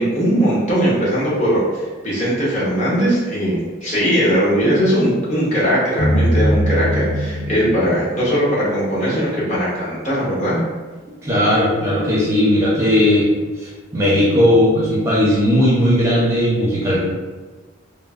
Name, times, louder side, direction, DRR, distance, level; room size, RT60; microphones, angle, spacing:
voice 1, 0.0-10.6, equal, 35° left, -8 dB, 0.8 m, -19 dB
sound 1, 6.0-9.2, equal, 65° left, 0.9 m, -21 dB
voice 2, 11.2-13.3 13.6-17.0, left 1 dB, 15° right, -8 dB, 0.5 m, -16 dB
3.0 x 2.0 x 2.3 m, 1.3 s
head